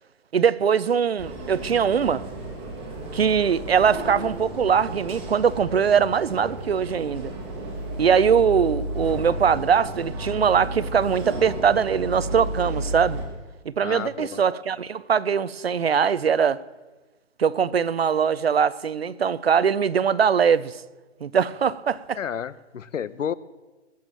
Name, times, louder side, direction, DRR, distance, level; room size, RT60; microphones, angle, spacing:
voice 1, 0.3-2.2 3.1-7.3 8.0-13.2 13.7-16.6 17.4-20.8 21.2-22.2, right 7 dB, 55° right, 0.6 m, -21 dB
sound 1, 1.2-13.2, right 1 dB, 10° right, 1.3 m, -33 dB
voice 2, 13.8-14.4 22.2-23.3, left 8 dB, 85° left, 0.8 m, -31 dB
21.0 x 7.2 x 7.5 m
hypercardioid pair, 175°, 37 cm